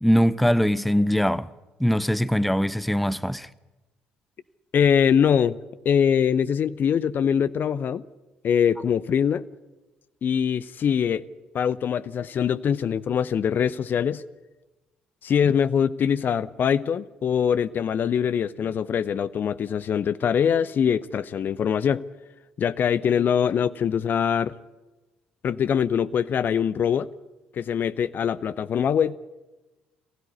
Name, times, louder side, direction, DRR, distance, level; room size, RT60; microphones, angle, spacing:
voice 1, 0.0-1.5 1.8-3.5, equal, ahead, 0.7 m, -22 dB
voice 2, 4.7-5.6 5.8-8.0 8.4-9.5 10.2-11.2 11.5-14.2 15.2-22.0 22.6-24.5 25.4-27.1 27.5-29.2, left 8 dB, 40° left, 0.6 m, -23 dB
23.0 x 16.0 x 9.7 m
figure-of-eight pair, 50°, 5 cm